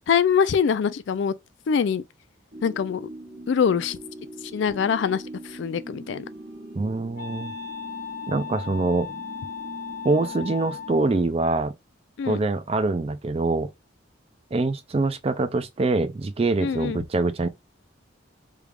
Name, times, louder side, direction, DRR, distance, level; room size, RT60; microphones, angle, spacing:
voice 1, 0.1-1.3 1.7-2.0 2.6-3.1 3.5-4.0 4.5-6.2 12.2-12.4 16.6-17.0, left 7 dB, 65° left, 0.3 m, -23 dB
sound 1, 2.5-11.2, right 1 dB, 70° right, 1.2 m, -42 dB
Wind instrument woodwind instrument, 5.8-11.2, left 7 dB, 50° right, 1.2 m, -38 dB
voice 2, 6.8-7.5 8.3-9.1 10.0-11.7 12.3-13.7 14.5-17.5, right 3 dB, 30° right, 0.3 m, -24 dB
3.2 x 2.4 x 3.4 m
head